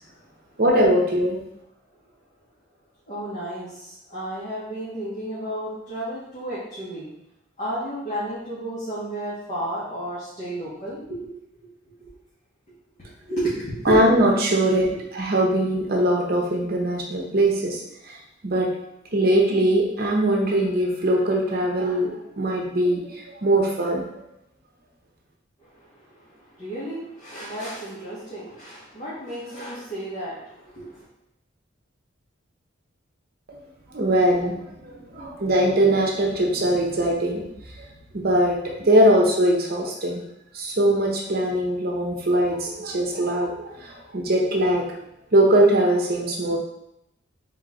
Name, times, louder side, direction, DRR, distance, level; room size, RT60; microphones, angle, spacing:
voice 1, 0.6-1.4 13.9-18.1 18.4-18.7 19.1-24.0 33.5-33.6 33.9-37.4 38.1-40.2 40.5-44.9 45.3-46.6, right 1 dB, 50° right, -1 dB, 0.8 m, -21 dB
voice 2, 3.1-7.1 7.6-11.3 11.6-11.7 12.0-12.1 13.0-14.0 14.6-15.0 25.6-31.0, right 1 dB, 40° left, -11 dB, 1.4 m, -32 dB
3.9 x 3.1 x 3.8 m, 0.82 s
head